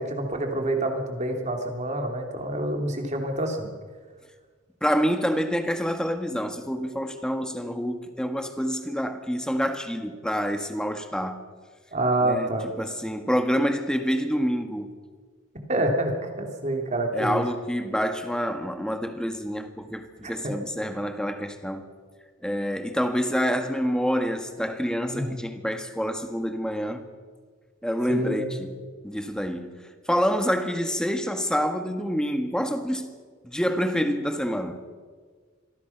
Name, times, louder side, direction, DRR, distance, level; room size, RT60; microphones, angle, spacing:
voice 1, 0.0-3.7 11.9-12.6 15.7-16.1 16.4-17.4 20.4-20.5 25.1-25.4 28.1-28.5, right 1 dB, 35° right, 3.4 m, -27 dB
voice 2, 4.8-11.5 12.2-14.9 17.1-21.9 22.4-27.0 27.8-33.1 33.4-34.8, equal, 5° left, 1.7 m, -27 dB
26.5 x 18.5 x 6.1 m
head